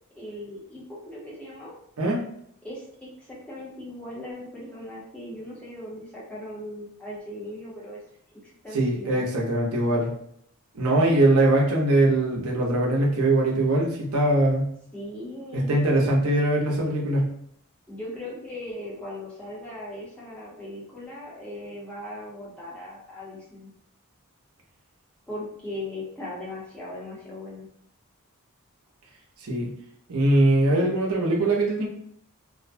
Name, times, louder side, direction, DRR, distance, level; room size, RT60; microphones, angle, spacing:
voice 1, 0.2-1.7 2.6-8.0 8.4-9.3 14.9-15.8 17.9-23.7 25.3-27.7, left 1 dB, 5° left, -7 dB, 0.7 m, -38 dB
voice 2, 8.7-10.1 10.7-14.7 15.5-17.3 29.4-29.7 30.1-31.9, right 1 dB, 75° right, -2 dB, 0.7 m, -22 dB
2.4 x 2.1 x 2.5 m, 0.69 s
head